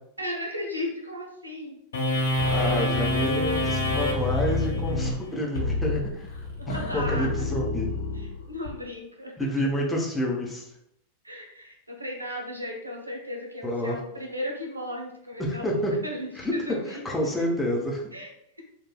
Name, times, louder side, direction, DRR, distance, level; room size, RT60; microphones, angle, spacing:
voice 1, 0.2-1.8 6.6-7.3 8.1-9.3 11.2-15.7 16.0-17.0 18.1-18.3, left 1 dB, 85° right, 0 dB, 0.6 m, -35 dB
sound 1, 1.9-8.7, left 2 dB, 70° left, 0.8 m, -27 dB
voice 2, 2.5-6.3 6.7-7.9 9.4-10.7 13.6-14.0 15.4-15.9 16.4-18.0, left 1 dB, 5° left, -2 dB, 0.7 m, -28 dB
3.9 x 2.3 x 2.2 m, 0.76 s
figure-of-eight pair, 90°, 0 cm